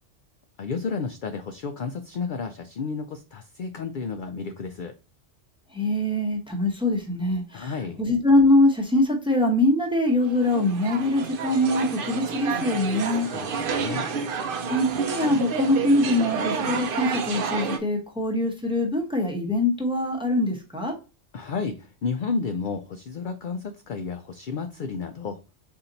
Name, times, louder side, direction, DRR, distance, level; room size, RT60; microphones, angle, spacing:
voice 1, 0.6-4.9 7.5-8.0 13.2-14.1 21.3-25.4, left 5 dB, 65° left, 7 dB, 0.5 m, -32 dB
voice 2, 5.7-13.6 14.7-20.9, left 1 dB, 5° right, 1 dB, 0.8 m, -23 dB
sound 1, 10.2-17.8, right 5 dB, 55° right, 0.7 m, -30 dB
4.3 x 2.8 x 3.8 m, 0.31 s
omnidirectional pair, 1.3 m